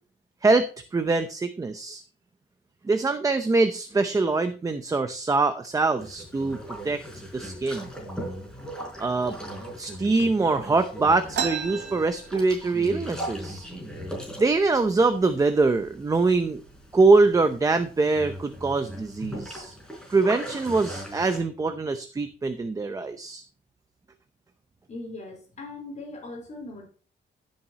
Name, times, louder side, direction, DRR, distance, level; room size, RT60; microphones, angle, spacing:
voice 1, 0.4-2.0 2.8-6.6 6.8-7.0 7.3-7.9 9.0-9.4 9.8-13.7 14.4-16.6 16.9-19.8 20.1-23.4, right 3 dB, 20° right, 8 dB, 0.7 m, -23 dB
Boat Water vehicle, 6.0-21.4, equal, 5° left, 4.3 m, -39 dB
sound 1, 11.3-12.9 13.3-13.4 13.6-14.3 14.9-15.0 15.7-15.9 16.4-16.8, right 7 dB, 70° right, 2.9 m, -33 dB
voice 2, 24.9-26.9, left 2 dB, 40° left, 2 dB, 4.1 m, -39 dB
15.5 x 7.3 x 2.9 m, 0.37 s
wide cardioid pair, 180°, 19 cm